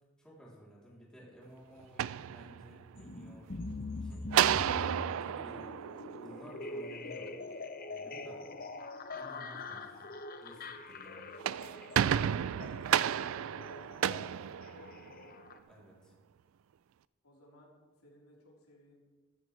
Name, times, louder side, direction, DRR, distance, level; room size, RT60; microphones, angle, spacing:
voice 1, 0.2-7.3 7.9-8.4 9.1-10.1 10.4-11.3 13.9-14.2 15.7-16.1, equal, 5° left, -6 dB, 3.3 m, -54 dB
sound 1, 1.8-3.0 4.3-6.8 11.2-15.3, right 9 dB, 65° right, 0.3 m, -32 dB
sound 2, 3.0-15.6, left 2 dB, 40° left, 0.8 m, -43 dB
voice 2, 8.3-8.7 12.2-13.1 13.7-15.3 17.2-19.0, left 1 dB, 90° left, -4 dB, 3.8 m, -60 dB
14.0 x 14.0 x 3.3 m, 1.3 s
head